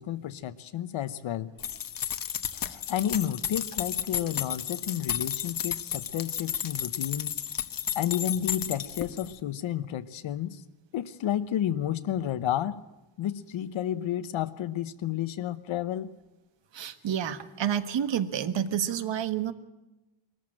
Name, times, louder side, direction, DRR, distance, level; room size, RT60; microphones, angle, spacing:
voice 1, 0.0-1.5 2.6-7.4 7.9-10.6 10.9-12.8 13.2-16.1, left 11 dB, 75° left, 12 dB, 1.0 m, -31 dB
sound 1, 1.6-9.3, left 9 dB, 45° left, 1.1 m, -33 dB
voice 2, 16.7-19.5, right 9 dB, 65° right, 12 dB, 1.5 m, -29 dB
21.5 x 14.0 x 8.8 m, 1.0 s
wide cardioid pair, 150°, 48 cm